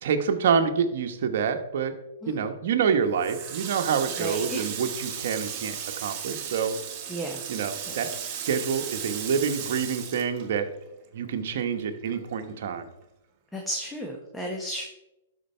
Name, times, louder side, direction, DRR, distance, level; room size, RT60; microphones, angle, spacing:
voice 1, 0.0-1.9 2.3-6.7 7.5-10.7 11.1-12.9, right 6 dB, 65° right, 6 dB, 1.2 m, -27 dB
Water tap faucet, 3.2-11.1 11.4-12.7, right 8 dB, 40° right, 1.7 m, -36 dB
voice 2, 4.2-4.7 7.1-7.4 13.5-14.9, right 1 dB, 5° left, 0 dB, 1.3 m, -33 dB
12.0 x 4.7 x 4.5 m, 0.91 s
hypercardioid pair, 130°, 0 cm